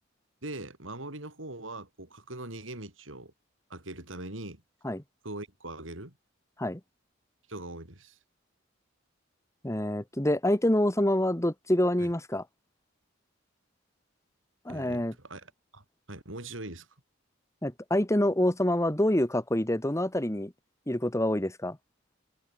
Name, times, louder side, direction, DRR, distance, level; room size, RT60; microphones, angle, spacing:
voice 1, 0.4-3.3 3.7-4.6 5.2-6.1 7.5-8.2 12.0-12.1 14.7-16.9, right 2 dB, 75° right, 5.6 m, -41 dB
voice 2, 9.6-12.4 14.7-15.1 17.6-20.5 20.9-21.8, left 1 dB, 15° left, 2.1 m, -26 dB
head